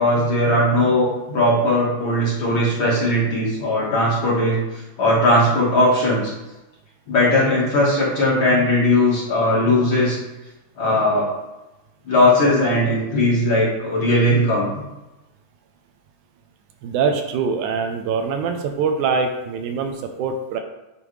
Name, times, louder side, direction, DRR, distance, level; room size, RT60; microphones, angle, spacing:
voice 1, 0.0-4.6 5.0-6.3 7.1-10.2 10.8-11.3 12.1-14.7, left 1 dB, 50° left, -6 dB, 1.8 m, -18 dB
voice 2, 16.8-20.6, right 5 dB, 80° right, 5 dB, 2.0 m, -23 dB
9.0 x 4.0 x 3.2 m, 1.0 s
omnidirectional pair, 3.6 m